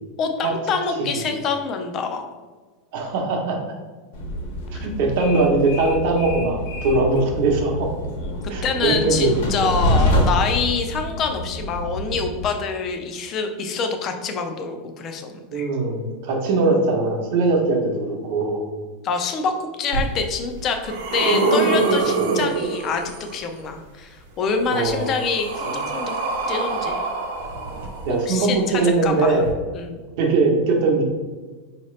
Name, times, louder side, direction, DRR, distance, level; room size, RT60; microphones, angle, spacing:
voice 1, 0.2-2.2 4.7-4.9 8.2-15.7 19.0-26.1 26.5-27.0 28.3-29.4 29.7-30.0, left 5 dB, 25° left, 5 dB, 0.4 m, -26 dB
voice 2, 2.9-3.6 4.7-7.9 8.5-9.7 15.5-18.6 24.7-25.1 28.0-29.5 30.2-31.0, right 3 dB, 50° right, 1 dB, 0.8 m, -21 dB
Train, 4.1-12.5, equal, 65° left, 1.1 m, -26 dB
sound 1, 19.9-20.0 20.6-23.3 24.5-28.4 29.4-29.5, right 3 dB, 90° right, 0.8 m, -24 dB
4.7 x 2.8 x 3.1 m, 1.3 s
supercardioid pair, 175°, 0 cm